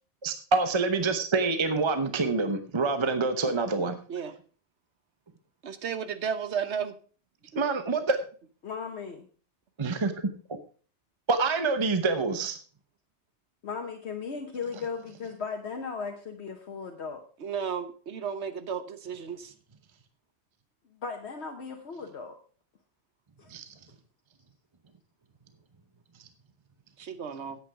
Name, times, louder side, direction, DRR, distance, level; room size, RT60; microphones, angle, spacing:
voice 1, 0.2-4.0 7.5-8.2 9.8-10.1 11.3-12.6 23.5-23.6, right 3 dB, 30° right, 9 dB, 0.9 m, -26 dB
voice 2, 5.6-7.0 7.5-7.6 17.4-19.5 27.0-27.6, right 7 dB, 75° right, 10 dB, 1.3 m, -33 dB
voice 3, 8.6-9.3 13.6-17.2 20.9-22.3 23.4-23.5, left 5 dB, 70° left, 3 dB, 1.3 m, -37 dB
9.5 x 8.1 x 4.8 m, 0.40 s
omnidirectional pair, 1.2 m